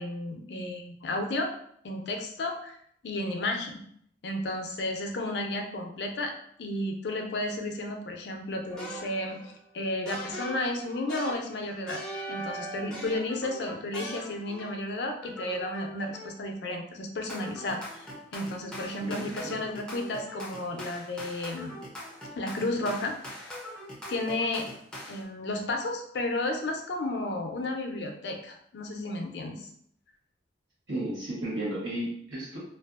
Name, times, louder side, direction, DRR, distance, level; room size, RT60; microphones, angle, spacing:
voice 1, 0.0-1.5 1.8-2.8 3.0-3.8 4.2-6.3 6.6-9.4 9.7-21.8 22.4-23.5 24.1-24.7 25.1-29.7, left 2 dB, 70° left, 3 dB, 0.4 m, -33 dB
sound 1, 8.7-9.5 10.1-14.9 15.2-16.5 17.3-25.2, equal, 5° left, 0.4 m, -41 dB
voice 2, 19.0-19.6 30.9-32.6, right 1 dB, 85° right, -6 dB, 1.1 m, -34 dB
2.5 x 2.3 x 2.4 m, 0.67 s
head